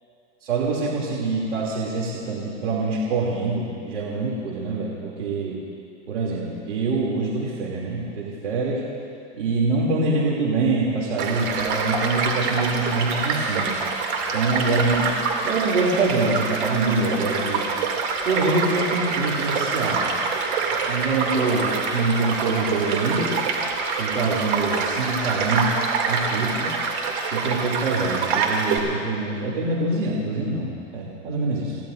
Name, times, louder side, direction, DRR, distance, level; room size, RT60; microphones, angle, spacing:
voice 1, 0.4-5.6 6.1-8.8 9.3-13.7 14.3-15.1 15.4-17.6 18.2-20.1 20.9-23.3 24.0-25.7 26.0-26.8 27.3-31.8, right 3 dB, 85° right, -4 dB, 3.0 m, -25 dB
Child speech kid speaking / Stream / Car passing by, 11.2-28.8, right 5 dB, 65° right, 2.8 m, -26 dB
29.0 x 15.5 x 2.6 m, 2.5 s
hypercardioid pair, 120°, 35 cm